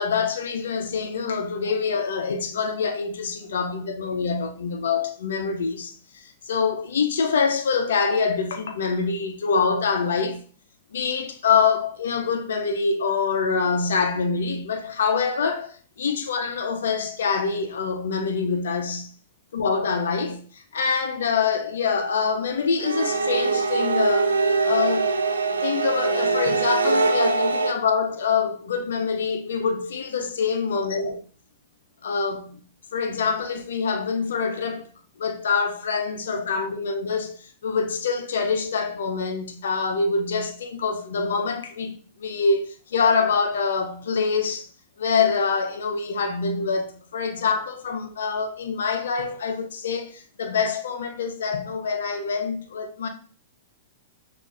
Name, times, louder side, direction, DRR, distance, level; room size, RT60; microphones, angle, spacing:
voice 1, 0.0-10.4 10.9-19.1 19.5-20.4 20.7-24.4 24.6-25.1 25.6-31.2 32.0-32.5 32.9-34.9 35.2-37.3 37.6-44.7 45.0-53.1, left 5 dB, 70° left, 0.6 m, -25 dB
sound 1, 22.8-27.7, right 4 dB, 85° right, 0.3 m, -22 dB
5.8 x 2.5 x 2.5 m
hypercardioid pair, 105°, 0 cm